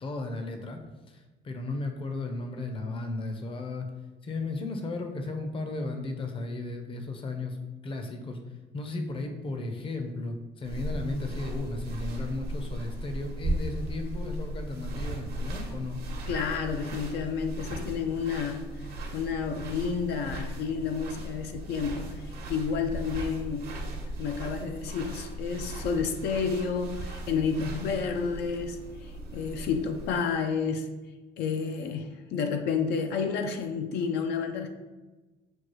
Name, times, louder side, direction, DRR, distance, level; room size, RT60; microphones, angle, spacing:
voice 1, 0.0-0.8 1.1-3.9 4.2-7.6 7.8-8.4 8.7-16.0, left 2 dB, 30° left, 5 dB, 0.6 m, -35 dB
sound 1, 10.6-30.2, right 1 dB, 75° right, 0.9 m, -37 dB
voice 2, 16.3-23.8 24.2-30.9 31.4-34.7, left 6 dB, 80° left, 5 dB, 0.4 m, -30 dB
6.2 x 2.3 x 3.0 m, 1.2 s
cardioid pair, 110°, 17 cm